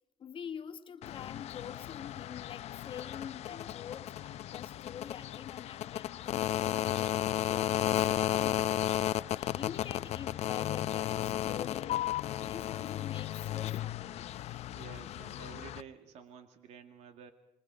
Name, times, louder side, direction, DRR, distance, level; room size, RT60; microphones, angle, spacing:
voice 1, 0.2-8.8 9.3-12.1 12.4-14.3, left 8 dB, 45° left, 6 dB, 1.6 m, -46 dB
sound 1, 1.0-15.8, left 12 dB, 60° left, 0.8 m, -34 dB
sound 2, 3.5-4.4 7.5-8.5 11.5-12.5, left 4 dB, 30° right, 3.6 m, -57 dB
voice 2, 14.7-17.3, right 6 dB, 70° right, 7 dB, 2.2 m, -51 dB
26.0 x 24.0 x 5.1 m, 0.91 s
cardioid pair, 105°, 12 cm